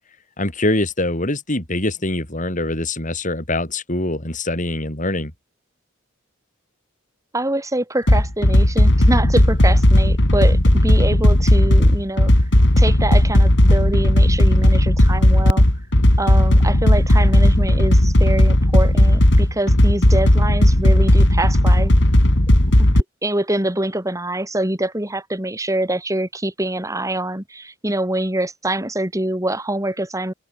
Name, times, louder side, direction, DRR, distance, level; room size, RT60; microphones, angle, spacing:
voice 1, 0.4-5.3, left 2 dB, 40° left, 5.6 m, -23 dB
voice 2, 7.3-12.3 12.8-15.6 16.2-21.9 22.8-30.3, right 1 dB, 15° right, 4.0 m, -25 dB
sound 1, 8.1-23.0, left 1 dB, 65° left, 2.9 m, -14 dB
open air
head